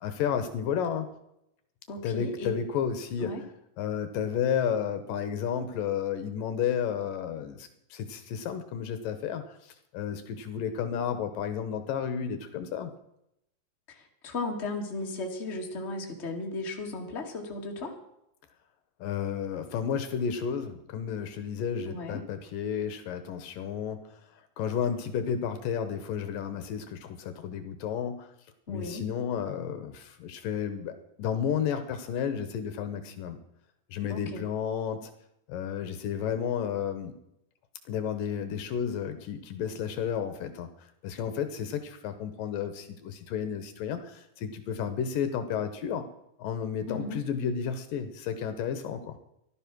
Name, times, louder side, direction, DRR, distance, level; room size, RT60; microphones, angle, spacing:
voice 1, 0.0-1.1 2.0-3.3 3.8-12.9 19.0-24.2 24.6-28.3 28.7-33.4 33.9-35.1 35.5-37.2 37.9-46.1 46.4-49.2, left 8 dB, 75° left, 9 dB, 2.6 m, -32 dB
voice 2, 1.9-2.6 3.2-3.4 13.9-18.0 21.8-22.2 28.7-29.0 34.1-34.4 46.9-47.2, left 2 dB, 20° left, 1 dB, 2.1 m, -36 dB
15.5 x 12.5 x 6.2 m, 0.80 s
omnidirectional pair, 4.2 m